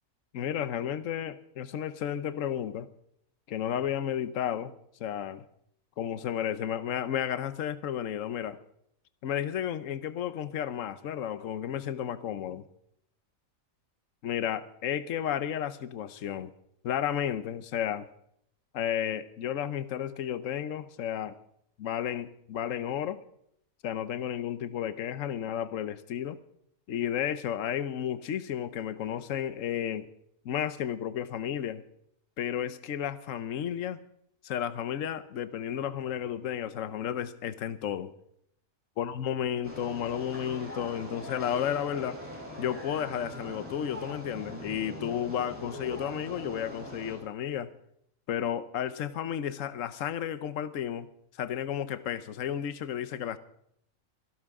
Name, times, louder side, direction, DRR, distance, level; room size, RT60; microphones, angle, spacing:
voice 1, 0.3-2.9 3.5-4.7 5.0-5.4 6.0-8.6 9.2-12.6 14.2-16.5 16.8-18.1 18.7-21.4 21.8-23.2 23.8-26.4 26.9-30.1 30.4-31.8 32.4-34.0 34.4-38.1 39.0-42.2 42.6-47.7 48.3-51.1 51.4-53.4, left 9 dB, 70° left, 1.2 m, -32 dB
sound 1, 39.6-47.1, equal, 10° right, 6.0 m, -42 dB
26.5 x 12.5 x 3.6 m
omnidirectional pair, 1.4 m